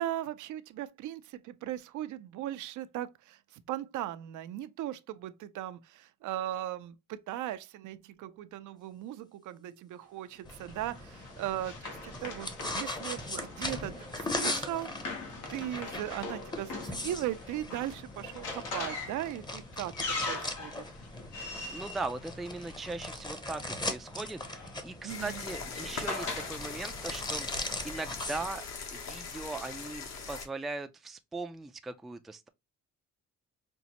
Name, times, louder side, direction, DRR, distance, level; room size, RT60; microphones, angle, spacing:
voice 1, 0.0-15.2 15.5-19.9 20.3-20.9 25.0-25.4, right 13 dB, 80° right, 0.5 m, -38 dB
sound 1, 10.4-28.5, left 2 dB, 15° left, 0.7 m, -40 dB
Run, 10.5-23.1 24.1-26.6, left 3 dB, 85° left, 1.2 m, -41 dB
voice 2, 21.7-28.6 28.9-32.5, right 3 dB, ahead, 0.3 m, -39 dB
sound 2, 25.1-30.4, left 5 dB, 60° left, 1.0 m, -41 dB
5.2 x 2.0 x 2.9 m
cardioid pair, 90°, 30 cm